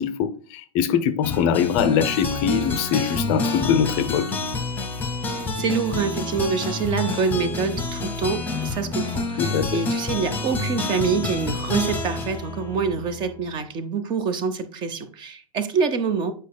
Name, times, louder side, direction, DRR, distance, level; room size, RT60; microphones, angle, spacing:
voice 1, 0.0-4.3 9.4-9.7, left 8 dB, 35° left, 0.5 m, -22 dB
sound 1, 1.2-13.5, left 3 dB, 10° left, 0.9 m, -28 dB
voice 2, 5.3-16.3, right 5 dB, 25° right, 0.7 m, -26 dB
8.2 x 5.1 x 2.2 m
figure-of-eight pair, 100°, 18 cm